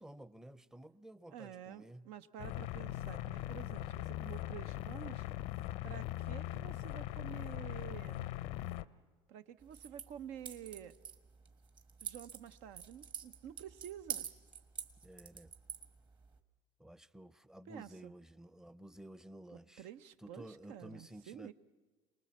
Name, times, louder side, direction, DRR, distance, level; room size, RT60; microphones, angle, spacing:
voice 1, 0.0-2.1 15.0-15.5 16.8-19.9 20.2-21.5, right 1 dB, 5° right, 16 dB, 0.6 m, -53 dB
voice 2, 1.3-5.3 5.8-8.2 9.3-11.0 12.0-14.3 17.7-18.1 19.5-21.5, right 10 dB, 80° right, 11 dB, 0.9 m, -50 dB
sound 1, 2.4-8.8, left 14 dB, 80° left, 0.6 m, -40 dB
sound 2, 9.6-16.4, right 8 dB, 40° right, 1.6 m, -48 dB
27.5 x 19.5 x 7.3 m, 1.3 s
supercardioid pair, 105°, 12 cm